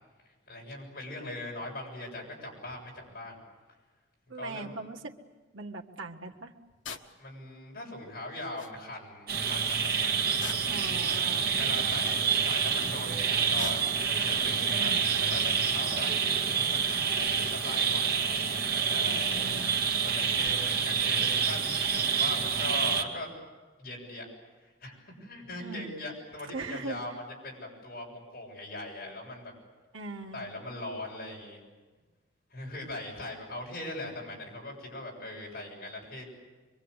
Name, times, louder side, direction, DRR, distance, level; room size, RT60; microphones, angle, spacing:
voice 1, 0.2-3.4 4.3-4.7 7.2-10.1 10.5-11.0 11.6-18.2 18.5-19.5 19.9-23.3 23.8-24.2 24.6-27.1 27.4-29.5 30.3-31.6 32.5-36.3, left 1 dB, 50° left, -1 dB, 7.4 m, -41 dB
voice 2, 4.3-5.1 5.5-6.5 10.7-11.5 14.6-15.1 19.1-19.8 25.6-26.0 26.5-27.0 29.9-30.4, right 3 dB, 85° right, 1 dB, 1.9 m, -40 dB
sound 1, 6.8-7.1 8.2-8.3 8.6-8.8 10.4-10.9 12.3-12.7 13.6-14.0 15.1-15.3, left 6 dB, 70° left, 1.4 m, -42 dB
sound 2, 9.3-23.0, right 6 dB, 50° right, 2.2 m, -28 dB
25.0 x 24.0 x 8.3 m, 1.3 s
head